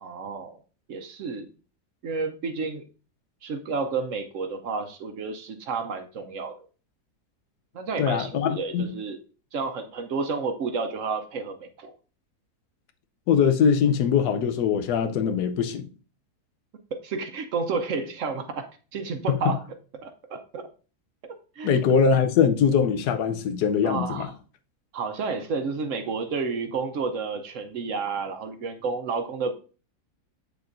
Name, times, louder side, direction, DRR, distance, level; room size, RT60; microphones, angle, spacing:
voice 1, 0.0-0.6 0.9-1.5 2.0-2.9 3.4-6.5 7.7-9.2 9.5-11.9 17.0-19.6 20.0-20.7 21.6-21.7 23.8-24.3 24.9-29.5, right 4 dB, 60° right, 0.9 m, -31 dB
voice 2, 8.0-8.9 13.3-15.9 19.3-19.4 21.6-24.3, left 7 dB, 85° left, 1.3 m, -22 dB
8.0 x 6.9 x 2.6 m
omnidirectional pair, 1.7 m